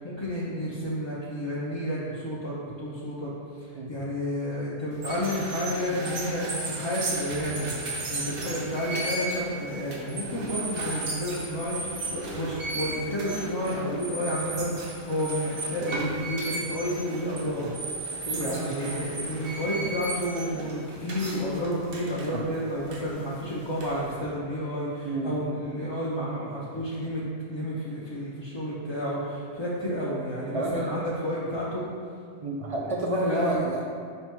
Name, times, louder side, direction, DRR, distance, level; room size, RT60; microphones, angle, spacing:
voice 1, 0.0-3.3 3.9-17.7 18.0-27.2 27.5-31.8 33.1-33.6, equal, 40° left, -7 dB, 0.4 m, -31 dB
sound 1, 4.9-24.2, right 2 dB, 80° right, 1.0 m, -35 dB
voice 2, 18.3-18.8 25.0-25.4 30.5-30.8 32.4-33.9, right 2 dB, 55° right, -2 dB, 0.4 m, -30 dB
5.2 x 2.2 x 4.4 m, 2.2 s
omnidirectional pair, 1.1 m